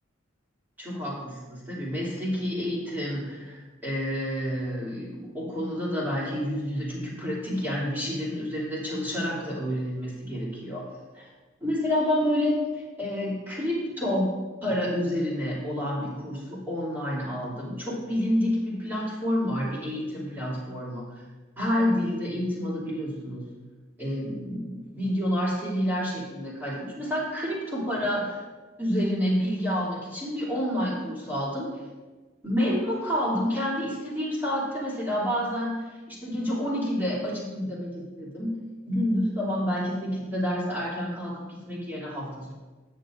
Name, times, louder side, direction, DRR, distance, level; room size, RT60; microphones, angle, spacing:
voice 1, 0.8-10.9 11.1-11.3 11.6-12.6 13.0-14.3 14.6-21.2 21.6-23.5 24.0-28.4 28.8-31.7 32.4-38.6 38.9-42.6, equal, 10° right, -7 dB, 2.7 m, -29 dB
13.0 x 7.9 x 2.6 m, 1.3 s
head